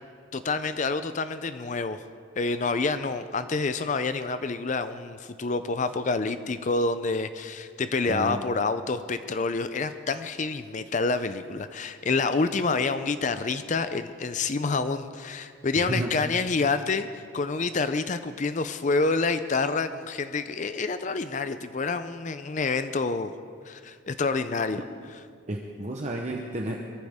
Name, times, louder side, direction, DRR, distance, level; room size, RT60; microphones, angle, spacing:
voice 1, 0.3-2.0 2.4-23.3 23.7-24.8, left 3 dB, 35° left, 11 dB, 0.5 m, -28 dB
voice 2, 8.1-8.4 15.8-16.1 25.5-26.8, right 1 dB, 35° right, 0 dB, 0.9 m, -31 dB
22.5 x 14.5 x 3.6 m, 2.2 s
head